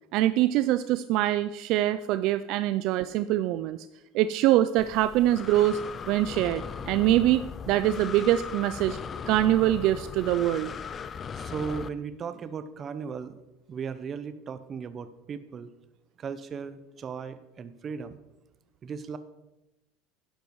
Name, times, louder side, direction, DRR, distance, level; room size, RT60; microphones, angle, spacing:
voice 1, 0.1-3.8 4.1-5.8 6.1-9.0 9.3-10.7, right 13 dB, 55° right, 13 dB, 0.4 m, -24 dB
Breathing, 4.8-11.9, left 6 dB, 25° left, 0.5 m, -38 dB
voice 2, 11.3-13.4 13.7-15.7 16.2-18.2 18.8-19.2, right 6 dB, 25° right, 12 dB, 0.8 m, -36 dB
12.0 x 10.5 x 4.7 m, 0.96 s
cardioid pair, 150°, 0 cm